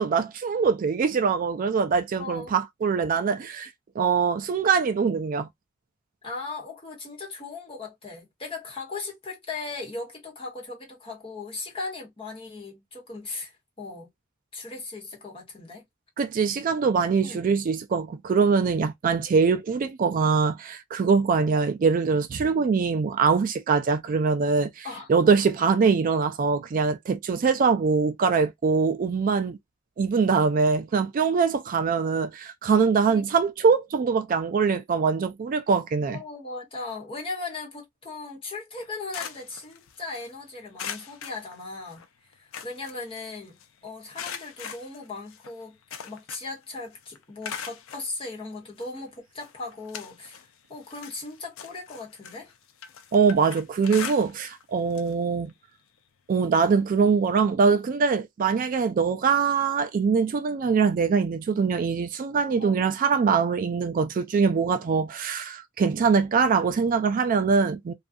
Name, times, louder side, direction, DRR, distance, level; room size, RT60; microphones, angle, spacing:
voice 1, 0.0-3.7 4.0-5.5 16.2-29.6 30.0-36.2 53.1-55.5 56.3-67.9, right 5 dB, 40° right, 0.3 m, -23 dB
voice 2, 2.2-2.5 6.2-14.1 14.5-15.8 17.2-17.5 24.8-25.1 33.1-33.2 36.1-42.0 42.3-52.5 62.6-62.8, left 3 dB, 25° left, 1.1 m, -38 dB
sound 1, 38.7-40.3 40.8-42.1 42.3-43.7 44.1-46.6 46.9-48.1 48.8-48.9 49.4-50.5 50.8-54.6 54.9-55.1 55.5-55.6 56.8-56.9, left 7 dB, 70° left, 0.5 m, -40 dB
2.5 x 2.3 x 2.5 m
head